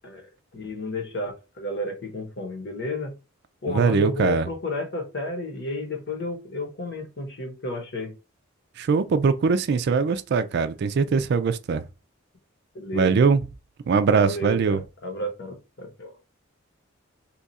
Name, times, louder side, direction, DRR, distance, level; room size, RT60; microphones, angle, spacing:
voice 1, 0.5-3.1 3.6-8.1 12.7-13.2 14.2-15.5 15.8-16.1, left 1 dB, 55° left, 1.1 m, -32 dB
voice 2, 3.7-4.5 8.8-11.8 12.9-13.4 13.9-14.8, right 5 dB, 55° right, 0.3 m, -21 dB
2.8 x 2.4 x 4.0 m
head